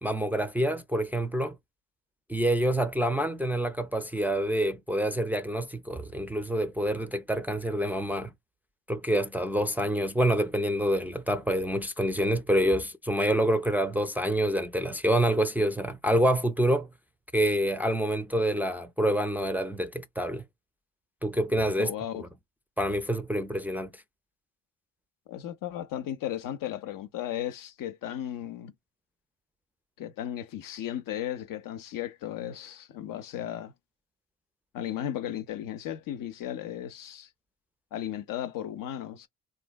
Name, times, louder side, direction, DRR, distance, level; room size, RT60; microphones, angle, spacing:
voice 1, 0.0-1.6 2.3-8.3 8.9-16.9 17.3-20.4 21.2-22.3 22.8-24.0, right 1 dB, 5° right, 0.4 m, -27 dB
voice 2, 21.8-22.2 25.3-28.7 30.0-33.7 34.7-37.3 37.9-39.3, left 11 dB, 60° left, 0.6 m, -35 dB
3.1 x 2.2 x 2.2 m
hypercardioid pair, 50°, 37 cm